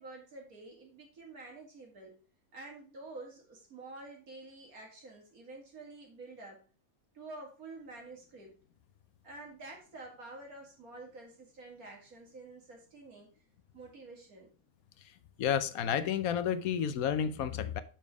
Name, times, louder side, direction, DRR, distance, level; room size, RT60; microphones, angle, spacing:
voice 1, 0.0-2.2 2.5-6.6 7.1-8.6 9.2-13.3 13.7-14.5, right 2 dB, 85° right, 2.9 m, -49 dB
voice 2, 15.4-17.8, left 8 dB, 80° left, 1.2 m, -31 dB
7.2 x 5.9 x 4.8 m
omnidirectional pair, 1.5 m